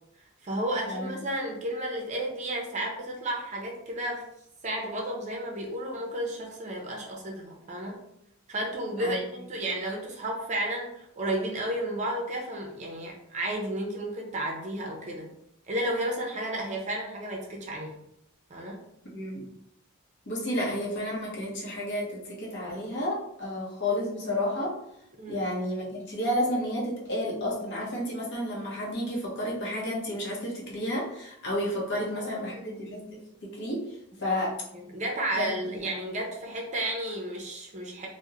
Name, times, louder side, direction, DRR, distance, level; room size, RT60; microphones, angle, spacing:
voice 1, 0.4-4.2 4.6-8.0 8.5-15.3 15.7-18.0 18.5-18.8 25.2-25.5 32.0-32.9 34.7-38.1, right 1 dB, 35° right, -1 dB, 0.5 m, -32 dB
voice 2, 19.0-19.5 20.3-24.8 25.3-34.6 35.4-35.8, left 1 dB, 55° left, -4 dB, 0.7 m, -31 dB
2.8 x 2.1 x 2.3 m, 0.79 s
head